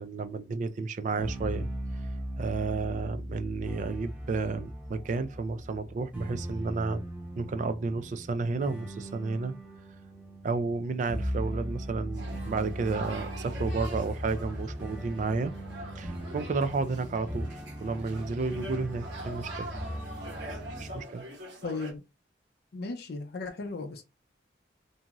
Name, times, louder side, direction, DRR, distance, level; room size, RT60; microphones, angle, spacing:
voice 1, 0.0-1.7 2.4-7.0 7.4-9.5 10.4-15.5 16.0-19.7 20.8-21.2, right 4 dB, 45° right, 0.3 m, -32 dB
sound 1, 1.2-21.0, equal, 10° right, 0.8 m, -38 dB
sound 2, 12.1-21.9, right 1 dB, 75° right, 1.2 m, -44 dB
voice 2, 21.6-22.0 22.7-24.0, left 3 dB, 60° left, 0.5 m, -36 dB
2.6 x 2.4 x 2.9 m
head